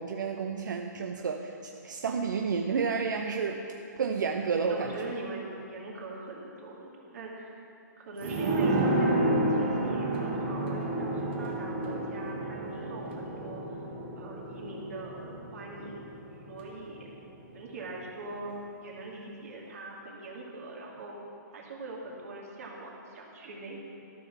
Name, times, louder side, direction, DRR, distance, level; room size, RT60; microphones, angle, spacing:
voice 1, 0.0-5.1, right 5 dB, 75° right, 3 dB, 0.8 m, -31 dB
voice 2, 4.7-7.6 8.0-13.6 14.2-16.0 16.5-17.1 17.5-21.1 21.5-23.9, right 2 dB, 50° right, -3 dB, 2.4 m, -41 dB
sound 1, 8.2-17.5 17.8-17.9, right 1 dB, 35° right, 1.6 m, -31 dB
13.5 x 6.1 x 7.3 m, 2.7 s
hypercardioid pair, 170°, 10 cm